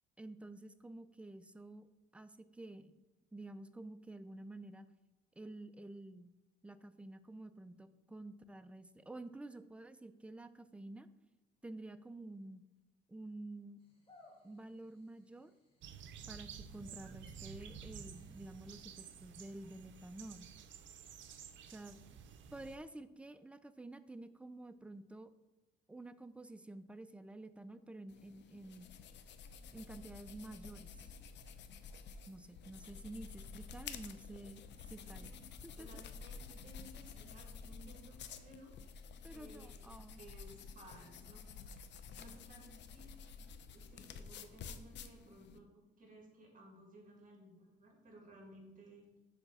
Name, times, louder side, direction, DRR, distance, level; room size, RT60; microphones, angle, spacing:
voice 1, 0.2-1.9 2.1-3.0 3.3-4.9 5.4-6.3 6.6-11.1 11.6-12.6 13.1-13.8 14.4-15.5 16.3-20.5 21.7-22.0 22.5-25.3 25.9-28.9 29.7-31.0 32.3-34.6 34.9-35.4 35.6-36.0 39.2-40.3, right 2 dB, 5° right, 11 dB, 0.4 m, -50 dB
sound 1, 13.8-18.8, left 2 dB, 25° left, 2.4 m, -67 dB
sound 2, 15.8-22.8, right 7 dB, 70° right, 0.6 m, -52 dB
sound 3, 28.1-45.6, left 5 dB, 65° left, 0.6 m, -51 dB
voice 2, 35.0-35.3 35.8-38.8 39.3-41.8 42.1-43.1 43.7-49.1, right 1 dB, 40° right, 0 dB, 2.2 m, -58 dB
7.2 x 3.4 x 5.6 m, 1.1 s
cardioid pair, 90°, 20 cm